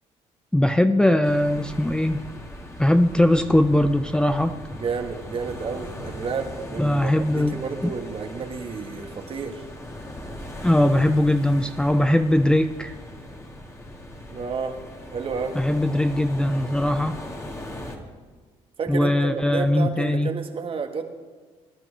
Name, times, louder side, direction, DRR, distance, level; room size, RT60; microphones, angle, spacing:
voice 1, 0.5-2.2 2.8-4.5 6.8-7.6 10.6-12.9 15.5-17.1 18.9-20.3, left 1 dB, 5° left, 9 dB, 0.6 m, -20 dB
sound 1, 1.2-18.0, left 1 dB, 20° left, 2.1 m, -39 dB
voice 2, 4.7-9.6 14.3-14.8 15.1-15.6 18.8-21.0, right 5 dB, 45° right, 6 dB, 1.6 m, -31 dB
20.0 x 11.0 x 3.4 m, 1.5 s
supercardioid pair, 80°, 13 cm